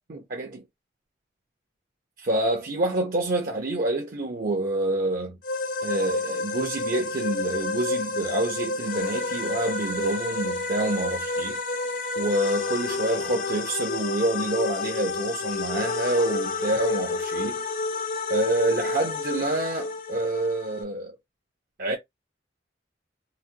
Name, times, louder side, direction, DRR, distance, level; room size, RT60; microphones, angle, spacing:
voice 1, 0.1-0.6 2.2-5.4 5.8-11.6 12.2-17.6 18.3-21.1 21.8-22.0, right 2 dB, 50° right, 0.6 m, -27 dB
sound 1, 5.4-20.8, left 3 dB, 50° left, 0.6 m, -30 dB
3.9 x 2.1 x 2.6 m
head